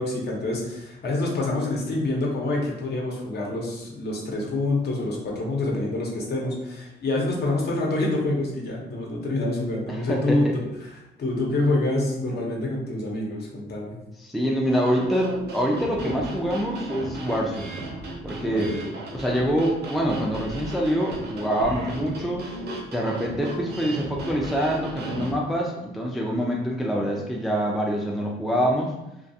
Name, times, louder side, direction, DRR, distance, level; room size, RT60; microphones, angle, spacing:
voice 1, 0.0-14.0 18.4-18.8, left 2 dB, 55° left, -2 dB, 0.8 m, -27 dB
voice 2, 9.9-10.5 14.2-17.7 18.2-18.7 19.1-22.5 22.9-28.9, equal, ahead, -1 dB, 0.4 m, -25 dB
sound 1, 14.7-25.3, right 2 dB, 55° right, 0.6 m, -35 dB
2.3 x 2.3 x 2.7 m, 0.91 s
cardioid pair, 90°, 20 cm